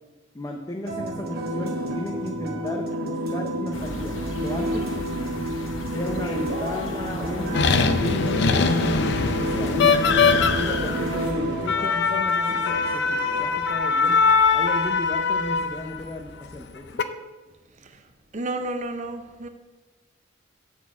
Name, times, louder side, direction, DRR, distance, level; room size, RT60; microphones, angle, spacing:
voice 1, 0.3-5.4 5.9-14.2 14.5-17.0, left 1 dB, 20° left, 0.6 m, -34 dB
sound 1, 0.9-13.5, equal, 55° right, 1.2 m, -30 dB
sound 2, 3.7-11.3, left 2 dB, 80° left, 0.9 m, -35 dB
sound 3, 7.5-16.0 16.7-17.0, left 5 dB, 60° left, 0.6 m, -22 dB
voice 2, 18.3-19.5, right 2 dB, 40° right, 0.7 m, -31 dB
9.1 x 4.3 x 7.1 m
head